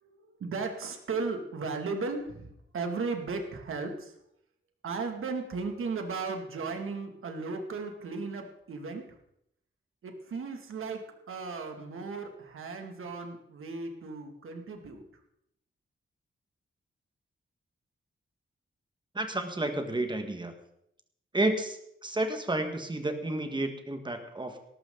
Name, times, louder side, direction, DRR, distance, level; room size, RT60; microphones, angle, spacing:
voice 1, 0.0-4.2 4.8-9.0 10.0-15.0, right 4 dB, 85° right, 4 dB, 2.4 m, -36 dB
voice 2, 19.1-20.5 21.3-21.8 22.0-24.6, right 1 dB, 20° right, 6 dB, 1.7 m, -31 dB
18.0 x 13.5 x 4.0 m, 0.76 s
wide cardioid pair, 150°, 21 cm